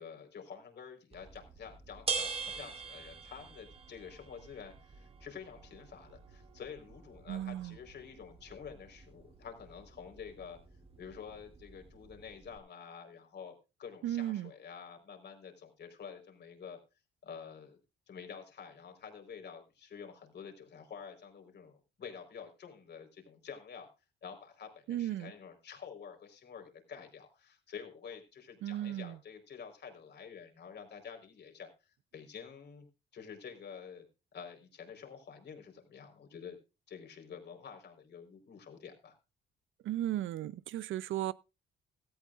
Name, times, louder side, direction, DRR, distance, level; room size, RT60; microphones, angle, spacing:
voice 1, 0.0-10.6 11.0-13.5 13.8-16.8 17.2-17.8 18.1-23.9 24.2-32.9 33.1-34.1 34.3-36.6 36.9-39.1, left 7 dB, 60° left, 4.4 m, -49 dB
sound 1, 1.1-12.6, right 5 dB, 30° right, 2.4 m, -45 dB
voice 2, 7.3-7.8 14.0-14.5 24.9-25.3 28.6-29.2 39.8-41.3, right 13 dB, 75° right, 0.7 m, -35 dB
17.0 x 13.5 x 2.5 m
cardioid pair, 90°, 20 cm